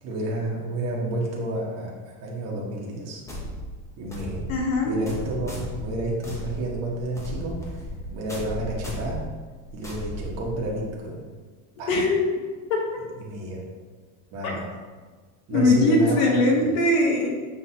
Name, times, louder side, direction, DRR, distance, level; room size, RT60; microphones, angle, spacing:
voice 1, 0.0-3.2 4.0-4.5 4.8-9.3 9.7-11.2 11.8-11.9 13.2-13.6 14.3-14.7 15.5-16.6, right 1 dB, 40° right, -3 dB, 1.0 m, -30 dB
sound 1, 3.3-10.9, equal, 5° left, 0.6 m, -35 dB
voice 2, 4.5-5.0 11.9-12.2 12.7-12.8 14.4-14.5 15.5-17.3, left 2 dB, 75° left, 0 dB, 1.2 m, -21 dB
5.7 x 3.1 x 2.7 m, 1.4 s
supercardioid pair, 140°, 42 cm